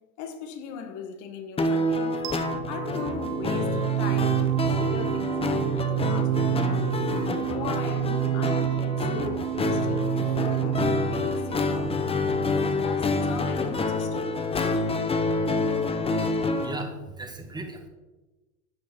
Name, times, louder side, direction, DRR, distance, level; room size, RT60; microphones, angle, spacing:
voice 1, 0.2-2.3 2.7-6.7 7.2-12.2 12.8-14.4, left 7 dB, 50° left, 1.9 m, -39 dB
sound 1, 1.6-16.8, left 3 dB, 15° left, 1.1 m, -27 dB
sound 2, 2.2-13.2, right 13 dB, 45° right, 0.7 m, -29 dB
voice 2, 14.8-15.5 16.1-16.2 16.6-17.9, right 2 dB, 10° right, 2.0 m, -39 dB
13.0 x 8.5 x 4.6 m
hypercardioid pair, 110°, 39 cm